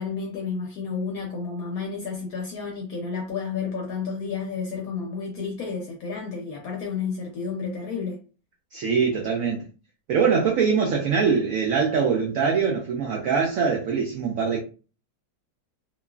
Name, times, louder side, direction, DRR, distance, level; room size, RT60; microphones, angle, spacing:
voice 1, 0.0-8.2, left 5 dB, 70° left, 0.9 m, -31 dB
voice 2, 8.7-9.6 10.1-14.6, right 6 dB, 85° right, 0.7 m, -23 dB
3.0 x 2.3 x 2.2 m
omnidirectional pair, 2.0 m